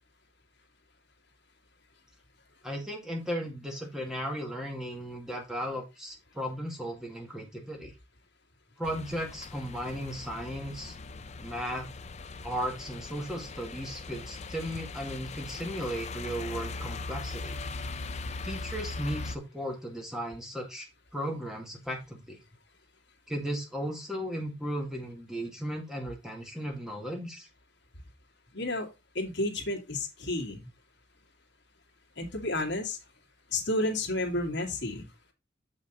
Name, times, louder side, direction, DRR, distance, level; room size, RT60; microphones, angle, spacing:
voice 1, 2.6-7.9 8.8-10.9 11.4-11.9 12.4-17.6 18.4-20.9 21.1-22.4 23.3-27.5, equal, 5° right, 1 dB, 2.0 m, -36 dB
sound 1, 8.8-19.4, left 3 dB, 35° left, 0.5 m, -40 dB
voice 2, 28.5-28.9 29.1-30.6 32.2-33.0 33.5-35.1, left 2 dB, 60° left, 2 dB, 1.9 m, -31 dB
6.9 x 5.6 x 4.0 m, 0.25 s
head